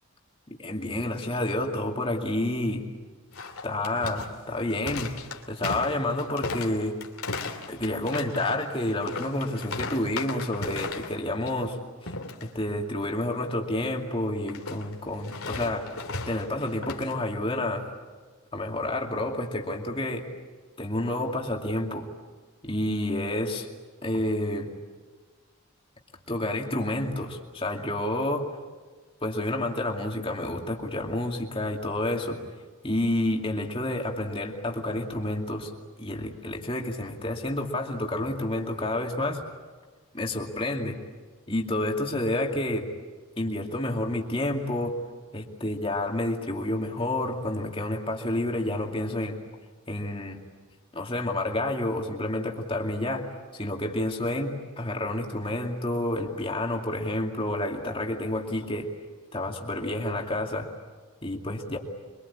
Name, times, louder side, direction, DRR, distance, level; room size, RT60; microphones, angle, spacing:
voice 1, 0.6-2.8 3.6-5.1 5.5-6.9 7.7-11.8 12.0-12.1 12.5-15.9 16.3-17.9 18.5-20.2 20.8-22.1 22.6-23.7 24.0-24.7 26.3-28.5 29.2-32.4 32.8-35.7 36.0-39.4 40.1-41.0 41.5-42.9 43.4-44.9 45.3-49.4 49.9-50.4 50.9-53.3 53.5-58.9 59.3-60.7 61.2-61.8, left 1 dB, 25° left, 1 dB, 2.5 m, -29 dB
sound 1, 3.3-11.2 11.5-11.7 12.1-12.4 14.5-17.1, left 3 dB, 80° left, 2.8 m, -36 dB
25.0 x 24.0 x 8.6 m, 1.4 s
head